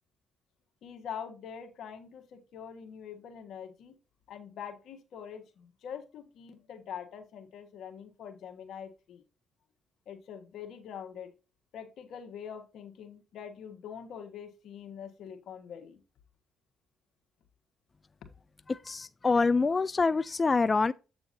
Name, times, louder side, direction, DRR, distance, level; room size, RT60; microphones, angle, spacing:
voice 1, 0.8-3.9 4.3-9.2 10.1-11.3 11.7-16.0, left 8 dB, 75° left, 1.4 m, -44 dB
voice 2, 18.7-20.9, left 4 dB, 30° left, 0.3 m, -26 dB
8.3 x 6.8 x 2.7 m
cardioid pair, 90°, 0 cm